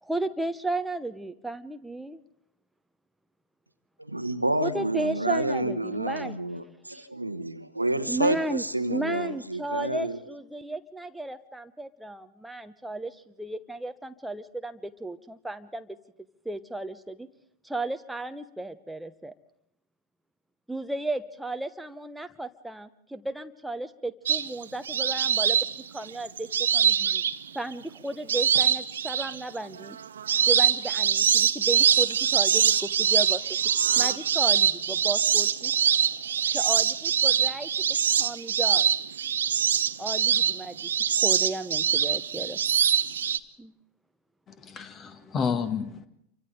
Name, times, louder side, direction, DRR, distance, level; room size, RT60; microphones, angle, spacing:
voice 1, 0.0-2.2 4.6-6.4 8.1-8.6 8.9-15.9 16.4-17.3 17.6-19.3 20.7-27.2 27.5-30.0 30.5-33.4 34.0-35.8 36.5-37.7 38.2-38.9 40.0-42.6 43.6-43.7, right 2 dB, 5° right, 0.9 m, -34 dB
voice 2, 4.0-10.2, right 1 dB, 85° right, 1.2 m, -29 dB
sound 1, 24.3-27.7 28.3-29.4 29.8-43.4, right 8 dB, 65° right, 0.7 m, -24 dB
voice 3, 44.5-46.1, left 6 dB, 25° left, 1.8 m, -30 dB
28.5 x 24.5 x 3.8 m
figure-of-eight pair, 90°, 0 cm